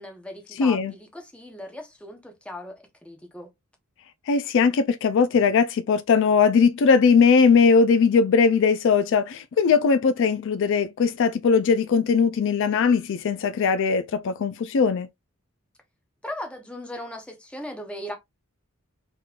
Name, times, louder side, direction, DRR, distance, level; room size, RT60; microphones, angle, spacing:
voice 1, 0.0-3.5 16.2-18.2, left 1 dB, 5° left, 0.8 m, -38 dB
voice 2, 0.6-0.9 4.3-15.1, left 5 dB, 60° left, 0.4 m, -20 dB
3.6 x 3.0 x 2.4 m
head